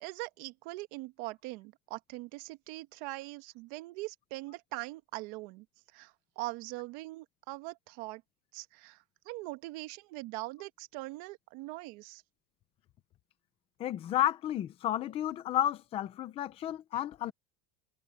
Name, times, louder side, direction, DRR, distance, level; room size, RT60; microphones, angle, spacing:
voice 1, 0.0-5.6 5.9-8.2 8.5-9.0 9.2-12.2, right 21 dB, 45° right, 1.3 m, -42 dB
voice 2, 13.8-17.3, left 12 dB, 15° left, 0.4 m, -32 dB
cardioid pair, 180°, 42 cm